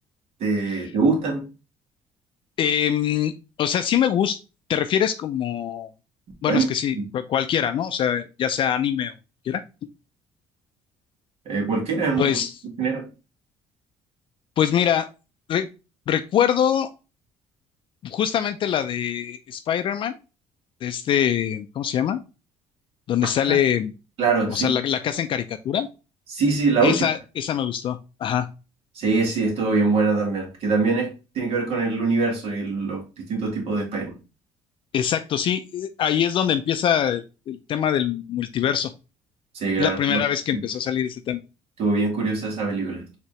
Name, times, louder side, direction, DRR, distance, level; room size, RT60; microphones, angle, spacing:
voice 1, 0.4-1.4 6.5-6.7 6.9-7.0 11.5-12.4 12.8-13.0 24.2-24.7 26.3-27.0 29.0-33.0 33.3-34.1 39.6-40.2 40.5-40.6 41.8-43.2, right 4 dB, 70° right, 2 dB, 1.6 m, -23 dB
voice 2, 2.6-3.3 3.6-4.4 4.7-5.9 6.4-9.1 9.4-9.6 12.2-12.6 14.6-15.1 15.5-15.7 16.1-16.9 18.0-20.1 20.8-22.2 23.1-23.9 24.5-25.9 26.8-28.5 34.9-38.9 39.8-41.4, left 9 dB, 55° left, 9 dB, 0.4 m, -23 dB
4.5 x 2.9 x 3.1 m, 0.30 s
cardioid pair, 105°, 11 cm